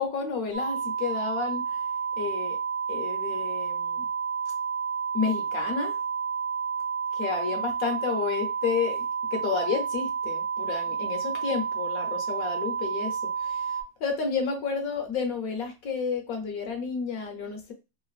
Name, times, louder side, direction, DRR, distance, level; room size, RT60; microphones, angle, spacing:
voice 1, 0.0-1.8 2.2-2.6 2.9-4.1 5.1-6.0 7.1-9.0 9.3-17.7, left 5 dB, 60° left, 3 dB, 1.0 m, -31 dB
sound 1, 0.5-13.8, right 6 dB, 70° right, 0.4 m, -30 dB
3.2 x 2.5 x 2.3 m, 0.27 s
omnidirectional pair, 2.1 m